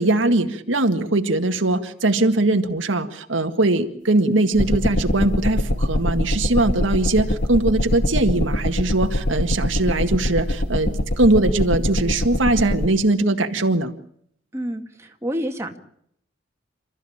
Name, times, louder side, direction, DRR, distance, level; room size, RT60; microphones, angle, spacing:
voice 1, 0.0-10.9 11.2-13.9, right 2 dB, 85° right, 6 dB, 1.9 m, -21 dB
sound 1, 4.6-12.9, left 1 dB, 65° left, 1.7 m, -23 dB
voice 2, 14.5-15.8, equal, 15° right, 3 dB, 2.1 m, -28 dB
29.0 x 14.0 x 8.8 m, 0.69 s
head